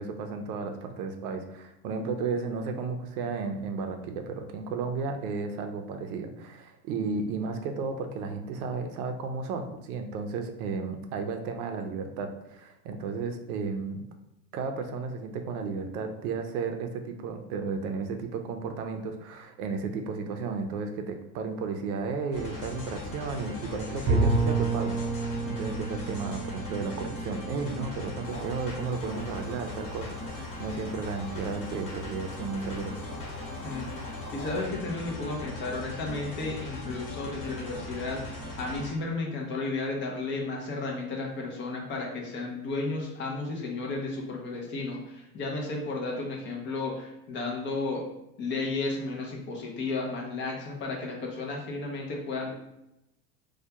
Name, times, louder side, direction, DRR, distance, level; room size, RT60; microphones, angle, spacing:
voice 1, 0.0-14.0 14.5-33.0, right 4 dB, 70° right, 5 dB, 0.5 m, -33 dB
sound 1, 22.3-38.9, left 2 dB, 45° left, 1.1 m, -39 dB
Bowed string instrument, 24.1-28.9, right 3 dB, 30° right, 0.5 m, -30 dB
sound 2, 28.2-34.6, equal, 80° left, 1.0 m, -47 dB
voice 2, 33.6-48.1 48.4-52.5, left 3 dB, 25° left, 0 dB, 0.4 m, -33 dB
2.2 x 2.2 x 2.8 m, 0.88 s
supercardioid pair, 115°, 47 cm